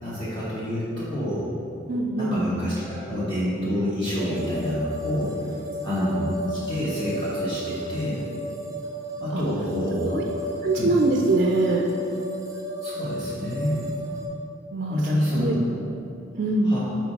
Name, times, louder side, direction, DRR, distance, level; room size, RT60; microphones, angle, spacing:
voice 1, 0.0-1.5 2.2-5.3 5.8-8.2 9.2-10.2 10.7-10.9 12.8-14.0 14.9-15.5 16.6-16.8, left 1 dB, 25° left, -11 dB, 1.3 m, -28 dB
voice 2, 1.9-2.4 6.6-6.7 9.3-9.4 10.1-10.2 10.6-11.9 14.7-15.6 16.3-16.8, right 2 dB, 45° right, 1 dB, 0.4 m, -23 dB
sound 1, 4.2-14.3, equal, 20° right, 0.8 m, -33 dB
6.4 x 4.5 x 4.6 m, 2.9 s
head